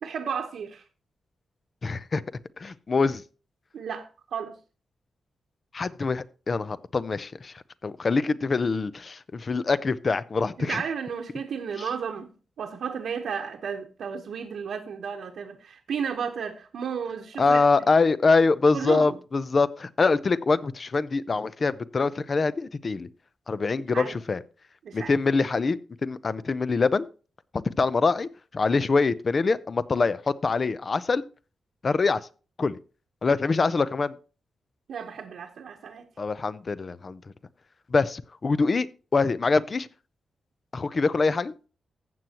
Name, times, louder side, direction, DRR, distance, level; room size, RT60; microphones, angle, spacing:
voice 1, 0.0-0.8 3.7-4.6 10.6-12.3 12.6-17.9 18.7-19.2 23.8-24.1 24.8-25.1 34.9-36.0, right 6 dB, 75° right, 1.0 m, -33 dB
voice 2, 1.8-2.2 2.6-3.2 5.7-7.5 7.8-10.8 17.4-23.1 23.5-24.4 24.9-27.1 27.8-31.2 31.8-32.2 32.6-32.8 33.2-34.1 36.2-37.2 37.9-38.9 39.1-39.9 40.7-41.5, left 4 dB, 35° left, 0.6 m, -24 dB
14.5 x 7.7 x 2.9 m
wide cardioid pair, 145°, 0 cm